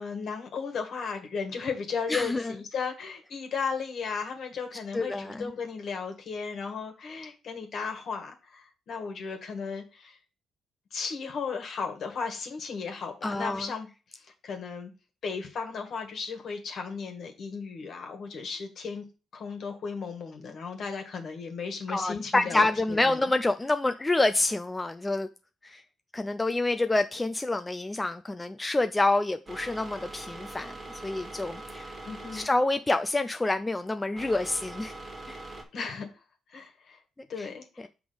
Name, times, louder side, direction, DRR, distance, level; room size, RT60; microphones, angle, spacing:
voice 1, 0.0-10.2 10.9-14.9 15.2-19.1 19.3-23.2 32.0-32.5 35.7-36.1 36.5-37.0 37.3-37.9, left 5 dB, 60° left, 1.5 m, -35 dB
voice 2, 2.1-2.5 4.9-5.5 13.2-13.7 21.9-25.3 25.6-25.8 26.1-30.7 31.0-31.9 32.3-34.9 35.3-35.4 37.4-37.5, left 2 dB, 15° left, 0.4 m, -27 dB
sound 1, 29.5-35.6, right 2 dB, 25° right, 1.7 m, -43 dB
6.1 x 3.5 x 5.1 m
cardioid pair, 90°, 0 cm